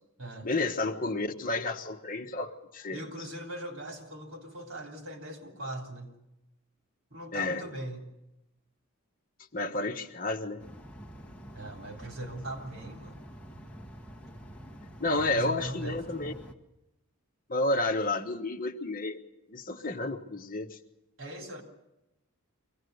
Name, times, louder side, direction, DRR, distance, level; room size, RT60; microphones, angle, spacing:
voice 1, 0.4-3.1 7.3-7.6 9.5-10.6 15.0-16.3 17.5-19.2 19.5-20.8, left 2 dB, 40° left, 5 dB, 1.4 m, -31 dB
voice 2, 2.9-6.2 7.1-8.0 11.5-13.2 15.1-16.4 21.2-21.6, right 1 dB, 65° right, 3 dB, 3.5 m, -40 dB
sound 1, 10.6-16.5, equal, 5° left, 1.5 m, -47 dB
24.0 x 17.5 x 8.0 m, 0.91 s
head